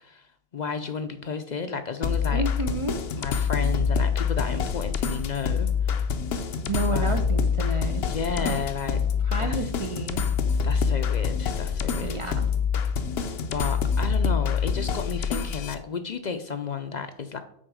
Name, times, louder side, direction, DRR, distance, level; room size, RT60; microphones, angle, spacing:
voice 1, 0.0-2.4 3.2-6.1 6.9-7.2 8.1-9.0 9.4-9.7 10.6-12.4 13.3-17.4, left 5 dB, 50° left, 9 dB, 0.6 m, -33 dB
sound 1, 2.0-15.7, left 6 dB, 80° left, 0.9 m, -26 dB
voice 2, 2.3-3.0 6.7-8.0 8.4-8.6 9.2-10.2 12.0-12.5, right 2 dB, 40° right, 5 dB, 0.5 m, -31 dB
6.3 x 4.6 x 6.2 m, 0.71 s
omnidirectional pair, 1.1 m